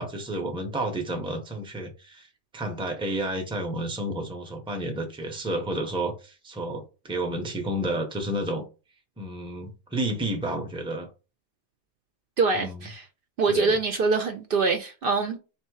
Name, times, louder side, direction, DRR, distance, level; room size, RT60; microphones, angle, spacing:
voice 1, 0.0-2.3 2.5-8.7 9.2-11.1 12.5-12.9 13.5-13.7, right 1 dB, 5° right, 0.6 m, -31 dB
voice 2, 12.4-13.1 13.4-15.4, right 4 dB, 60° right, 0.7 m, -24 dB
3.4 x 2.8 x 4.7 m
omnidirectional pair, 1.2 m